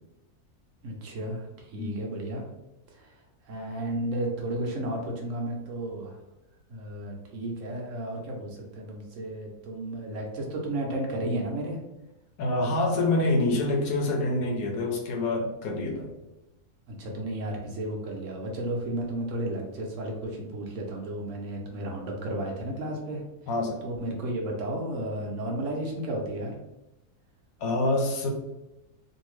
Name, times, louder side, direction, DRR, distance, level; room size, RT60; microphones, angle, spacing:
voice 1, 0.8-2.4 2.9-6.2 6.7-11.8 16.9-23.2 23.8-26.6, right 1 dB, 65° right, 0 dB, 0.9 m, -33 dB
voice 2, 12.4-16.1 23.5-23.8 27.6-28.3, left 2 dB, 70° left, 1 dB, 1.0 m, -26 dB
2.7 x 2.6 x 3.0 m, 0.96 s
omnidirectional pair, 1.6 m